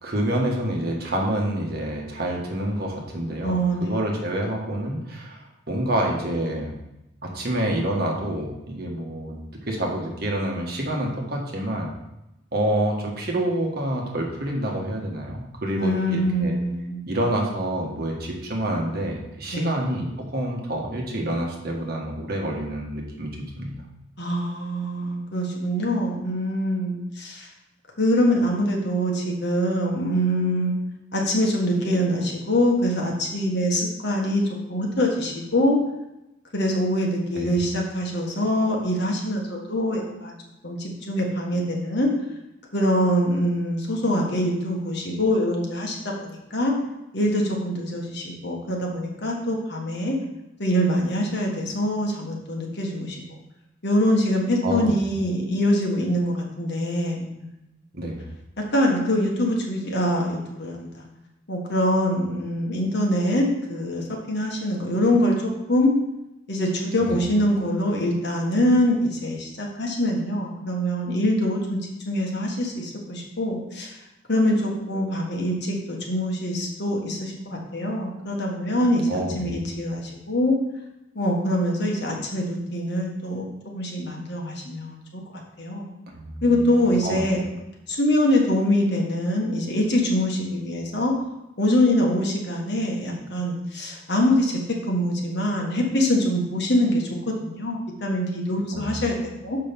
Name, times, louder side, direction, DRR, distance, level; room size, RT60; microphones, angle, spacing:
voice 1, 0.0-6.7 7.2-9.4 9.7-11.9 12.5-16.6 17.1-20.1 20.3-23.3 23.6-23.7 37.3-37.6 54.6-55.0 57.9-58.2 67.0-67.2 79.1-79.5 86.1-86.4 87.0-87.2 98.7-99.0, right 1 dB, 50° right, 0 dB, 1.5 m, -27 dB
voice 2, 3.4-3.9 15.7-17.0 19.5-19.7 24.2-27.5 28.0-30.7 31.1-34.4 34.7-35.8 36.5-40.4 40.6-42.1 42.7-46.0 46.2-46.7 47.1-50.1 50.6-53.2 53.8-57.5 58.6-61.0 61.5-65.4 65.7-65.9 66.5-71.8 72.0-73.9 74.3-80.5 81.1-85.9 86.4-87.5 87.9-91.1 91.6-99.6, equal, 60° left, 0 dB, 1.6 m, -24 dB
6.7 x 5.5 x 5.3 m, 0.91 s
head